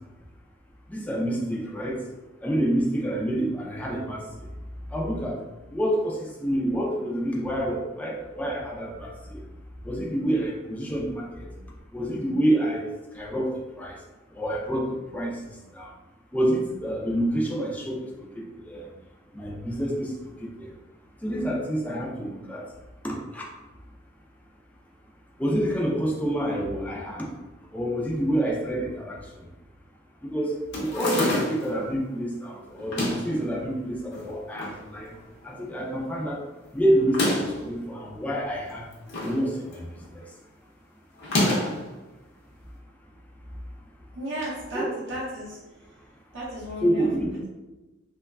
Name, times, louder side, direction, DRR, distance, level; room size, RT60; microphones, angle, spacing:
voice 1, 0.9-2.0 2.4-4.2 4.9-5.4 5.7-9.4 9.9-11.5 11.9-12.9 13.2-13.5 13.8-13.9 14.4-14.9 15.1-15.3 15.8-15.9 16.3-18.0 18.4-18.5 18.7-18.8 19.3-20.1 20.6-20.7 21.2-22.6 23.0-23.4 25.4-27.2 27.7-29.2 30.2-30.5 30.8-35.1 35.4-36.4 36.7-38.8 39.2-39.5 44.7-44.9 46.8-47.5, right 1 dB, 10° left, -2 dB, 0.3 m, -27 dB
sound 1, 30.7-31.7 32.8-33.4 34.1-34.8 35.1-35.2 35.4-35.5 37.0-37.6 38.7-39.4 39.7-40.1 41.2-41.8, left 1 dB, 55° left, 0.6 m, -27 dB
voice 2, 44.1-45.6 46.3-47.1, equal, 60° right, -7 dB, 0.6 m, -33 dB
2.9 x 2.3 x 2.2 m, 1.1 s
head